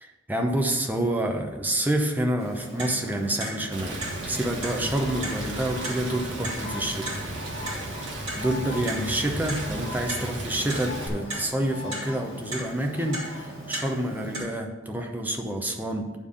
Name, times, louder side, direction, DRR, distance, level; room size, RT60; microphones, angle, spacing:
voice 1, 0.0-3.9 4.3-7.1 8.4-16.1, right 1 dB, 10° right, 2 dB, 0.7 m, -28 dB
Clock, 2.4-14.4, right 2 dB, 30° right, 2.5 m, -37 dB
Rain, 3.7-11.1, right 1 dB, 65° right, 1.5 m, -35 dB
Bird, 4.6-13.9, left 3 dB, 55° left, 1.2 m, -42 dB
9.5 x 3.4 x 6.9 m, 1.2 s
head